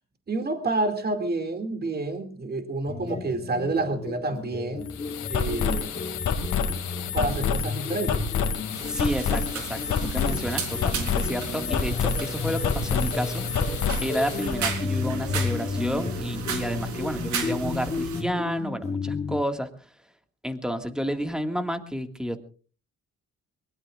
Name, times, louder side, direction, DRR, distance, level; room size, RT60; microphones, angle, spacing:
voice 1, 0.3-4.9 5.3-5.9 7.1-8.2, right 2 dB, 30° right, 6 dB, 2.5 m, -29 dB
sound 1, 2.9-19.4, left 4 dB, 20° left, 1.0 m, -33 dB
sound 2, 4.8-14.6, left 6 dB, 80° left, 2.4 m, -28 dB
sound 3, 8.7-18.2, right 6 dB, 75° right, 3.8 m, -35 dB
voice 2, 8.9-13.4 14.0-19.9 20.4-22.4, equal, ahead, 7 dB, 1.9 m, -31 dB
23.0 x 21.0 x 2.5 m, 0.39 s
cardioid pair, 90°, 30 cm